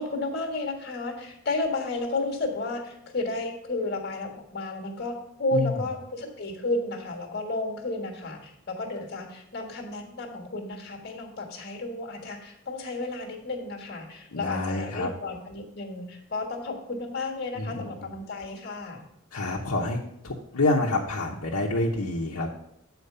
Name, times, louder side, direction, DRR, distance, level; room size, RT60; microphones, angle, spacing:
voice 1, 0.0-19.0, left 2 dB, 50° left, 1 dB, 1.6 m, -32 dB
voice 2, 14.3-15.1 17.5-17.9 19.3-20.0 20.2-22.5, left 2 dB, 85° left, -3 dB, 1.0 m, -27 dB
8.3 x 4.5 x 5.6 m, 0.78 s
head